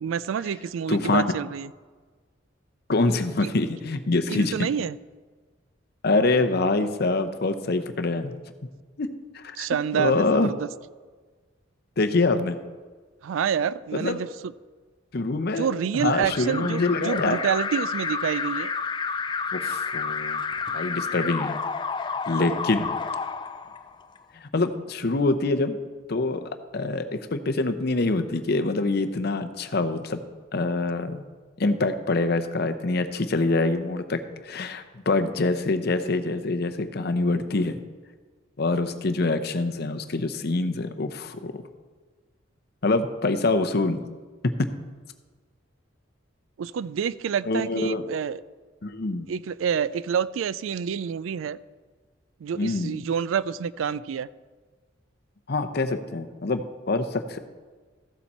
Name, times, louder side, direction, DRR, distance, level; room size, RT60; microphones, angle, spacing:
voice 1, 0.0-1.7 3.4-3.5 4.3-5.0 9.6-10.7 13.2-14.3 15.6-18.7 22.3-22.6 46.6-48.4 49.3-51.6 52.4-54.3, right 7 dB, 80° right, 18 dB, 0.3 m, -28 dB
voice 2, 0.9-1.3 2.9-4.7 6.0-8.3 9.0-9.1 9.3-9.7 9.9-10.5 12.0-12.6 13.9-14.2 15.1-15.7 15.9-17.4 19.5-20.4 20.7-21.6 22.3-23.0 24.3-25.8 26.1-30.2 30.5-31.2 31.6-37.8 38.6-41.6 42.8-44.0 44.6-44.7 47.5-48.0 48.8-49.3 52.5-53.0 55.5-57.4, left 3 dB, 55° left, 8 dB, 0.7 m, -25 dB
Alarm, 16.3-24.2, left 5 dB, 25° left, 0.3 m, -30 dB
14.5 x 7.0 x 4.3 m, 1.4 s
head